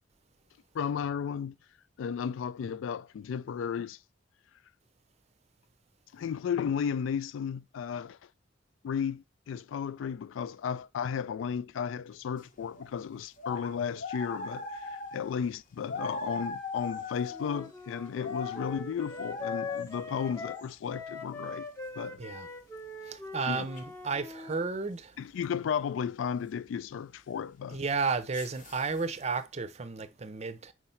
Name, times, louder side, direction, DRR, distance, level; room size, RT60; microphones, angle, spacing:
voice 1, 0.7-1.5 2.0-4.0 6.1-8.2 8.8-21.7 22.0-22.2 23.5-23.7 25.2-27.8, left 7 dB, 85° left, 0.3 m, -34 dB
sound 1, 12.8-12.9 13.4-15.2 15.9-17.5 18.0-18.9 19.1-19.9 20.3-20.7 23.8-24.0 27.8-29.3, left 3 dB, 45° left, 0.8 m, -39 dB
Wind instrument woodwind instrument, 17.3-24.6, left 3 dB, 15° left, 0.7 m, -41 dB
voice 2, 22.2-22.5 23.0-25.2 27.7-30.7, right 4 dB, 35° right, 0.5 m, -33 dB
4.7 x 4.4 x 5.6 m
head